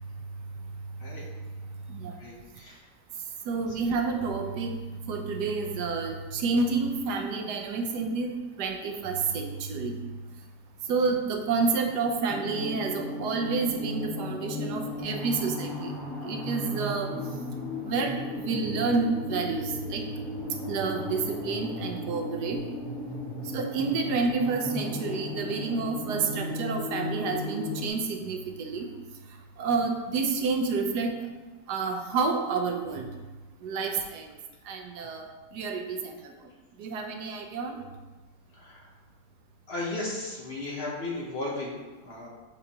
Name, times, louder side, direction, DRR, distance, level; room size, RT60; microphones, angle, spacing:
voice 1, 2.2-2.8 35.0-35.2 38.5-38.9 39.7-42.3, left 2 dB, 45° left, -3 dB, 1.0 m, -35 dB
voice 2, 3.5-4.8 5.1-8.3 8.6-9.9 10.9-16.0 16.2-17.1 17.8-20.0 20.7-22.6 23.5-28.9 29.6-31.2 31.7-33.1 33.6-34.2 34.7-35.2 35.5-36.1 36.8-37.7, right 4 dB, 85° right, 4 dB, 1.3 m, -29 dB
sound 1, 12.3-27.9, left 2 dB, ahead, 1.1 m, -35 dB
6.8 x 4.7 x 2.9 m, 1.2 s
omnidirectional pair, 1.7 m